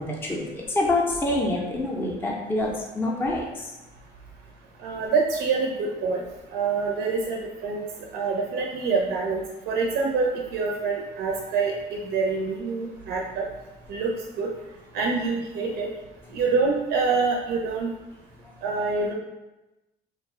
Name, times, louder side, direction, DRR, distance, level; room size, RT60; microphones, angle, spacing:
voice 1, 0.0-3.4, left 2 dB, 10° left, -2 dB, 0.4 m, -26 dB
voice 2, 4.8-6.2 6.5-7.9 8.1-13.5 13.9-14.5 14.9-15.9 16.3-17.9 18.6-19.1, right 4 dB, 75° right, 0 dB, 0.4 m, -26 dB
2.4 x 2.0 x 3.4 m, 1.0 s
cardioid pair, 110°, 17 cm